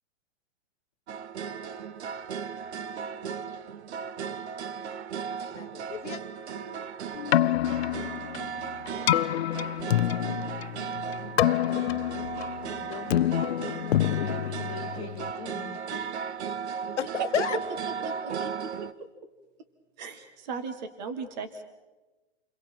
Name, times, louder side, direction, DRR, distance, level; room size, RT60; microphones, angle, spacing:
sound 1, 1.1-18.9, right 6 dB, 70° right, 1.0 m, -36 dB
voice 1, 5.5-6.2 8.9-9.1 9.9-10.3 16.7-17.6, left 9 dB, 85° left, 13 dB, 1.4 m, -34 dB
Keyboard (musical), 7.1-15.3, left 12 dB, 60° left, 0.6 m, -27 dB
voice 2, 12.5-16.1, left 8 dB, 35° left, 1 dB, 2.5 m, -42 dB
voice 3, 18.0-18.5 20.0-21.6, right 5 dB, 40° right, 8 dB, 1.8 m, -36 dB
29.0 x 22.5 x 4.5 m, 1.2 s
hypercardioid pair, 170°, 35 cm